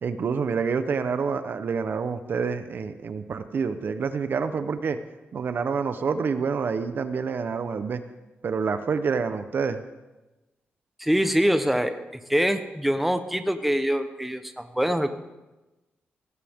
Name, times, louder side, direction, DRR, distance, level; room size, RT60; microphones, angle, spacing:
voice 1, 0.0-5.0 5.3-8.0 8.4-9.8, right 5 dB, 60° right, 10 dB, 0.8 m, -27 dB
voice 2, 11.0-12.0 12.3-15.1, equal, 5° right, 8 dB, 0.9 m, -24 dB
17.5 x 15.0 x 3.6 m, 1.1 s
cardioid pair, 105°, 4 cm